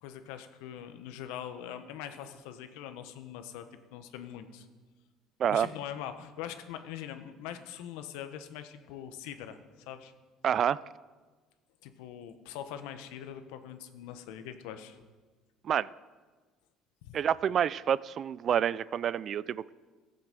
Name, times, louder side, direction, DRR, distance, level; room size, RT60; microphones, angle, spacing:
voice 1, 0.0-3.7 3.9-4.7 5.5-9.6 9.9-10.1 11.8-15.0 17.0-17.2, left 10 dB, 90° left, 9 dB, 1.0 m, -42 dB
voice 2, 10.4-10.8 15.6-15.9 17.1-19.7, right 9 dB, 50° right, 20 dB, 0.3 m, -28 dB
14.0 x 7.9 x 7.5 m, 1.3 s
cardioid pair, 105°, 0 cm